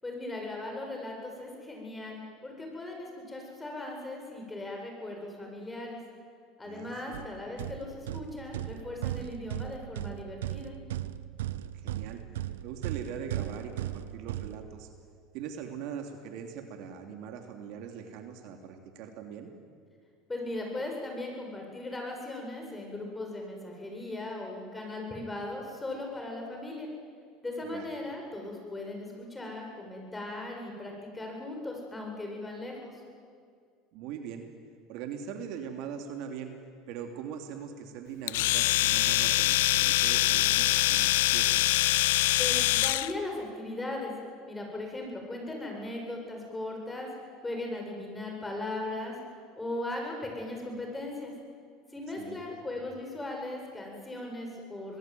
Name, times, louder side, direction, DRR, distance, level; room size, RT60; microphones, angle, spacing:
voice 1, 0.0-6.0 6.6-10.7 20.3-26.9 27.4-33.0 42.4-44.1 44.4-47.1 47.4-49.1 49.5-51.3 51.9-55.0, left 2 dB, 15° left, 1 dB, 7.9 m, -38 dB
voice 2, 6.6-7.1 11.7-12.2 12.6-14.9 15.3-19.5 27.7-27.9 33.9-34.4 34.9-36.6 36.9-41.6 52.1-52.6, right 7 dB, 65° right, 5 dB, 2.9 m, -41 dB
sound 1, 7.1-15.1, right 13 dB, 85° right, 0.7 m, -37 dB
Domestic sounds home sounds, 38.3-43.1, left 17 dB, 80° left, 0.6 m, -24 dB
26.0 x 20.5 x 9.3 m, 2.2 s
supercardioid pair, 95°, 0 cm